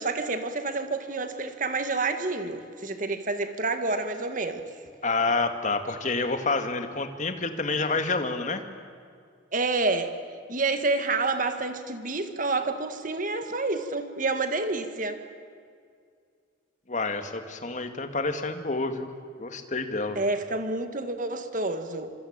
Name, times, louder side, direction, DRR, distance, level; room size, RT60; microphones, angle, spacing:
voice 1, 0.0-4.6 9.5-10.1 10.5-15.2 20.1-22.1, right 3 dB, 45° right, 8 dB, 1.8 m, -28 dB
voice 2, 5.0-8.6 16.9-19.1 19.4-20.2, left 3 dB, 40° left, 7 dB, 2.1 m, -28 dB
26.0 x 25.5 x 8.9 m, 2.2 s
head